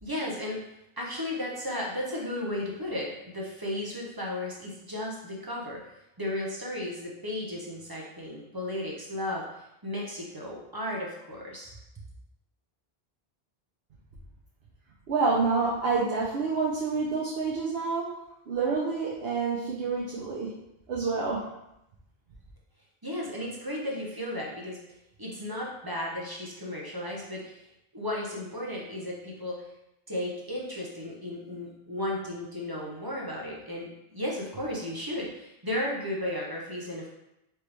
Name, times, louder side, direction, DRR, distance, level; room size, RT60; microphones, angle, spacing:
voice 1, 0.0-0.7 1.0-5.8 6.2-9.5 9.8-11.8 23.0-24.8 25.2-27.7 27.9-29.6 30.1-37.1, left 1 dB, 25° right, -4 dB, 0.7 m, -34 dB
voice 2, 15.1-18.1 18.5-20.5 20.9-21.4, right 4 dB, 75° right, -6 dB, 0.9 m, -28 dB
4.5 x 3.0 x 3.3 m, 0.86 s
omnidirectional pair, 1.0 m